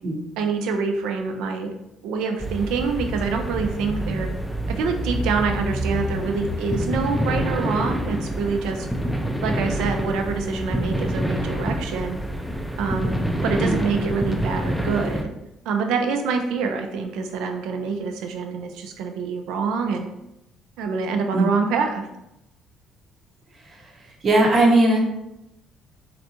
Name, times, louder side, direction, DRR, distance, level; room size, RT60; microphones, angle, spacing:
voice 1, 0.4-1.7 2.0-4.3 4.7-8.9 9.4-12.2 12.8-15.3 15.7-20.1 20.8-22.1, right 5 dB, 90° right, 5 dB, 0.4 m, -26 dB
sound 1, 2.4-15.2, equal, ahead, 0.4 m, -27 dB
voice 2, 24.2-25.0, right 2 dB, 35° right, -1 dB, 0.8 m, -18 dB
3.9 x 3.4 x 2.8 m, 0.87 s
cardioid pair, 135°, 0 cm